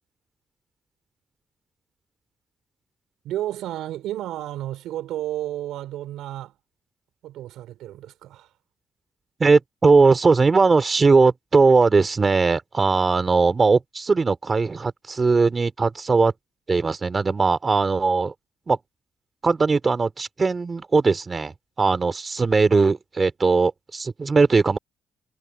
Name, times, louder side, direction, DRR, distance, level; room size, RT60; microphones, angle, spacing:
voice 1, 3.2-6.5 7.2-8.5, right 13 dB, 85° right, 5.2 m, -32 dB
voice 2, 9.4-16.3 16.7-18.3 18.7-18.8 19.4-24.8, right 4 dB, 30° right, 3.3 m, -19 dB
cardioid pair, 90°, 0 cm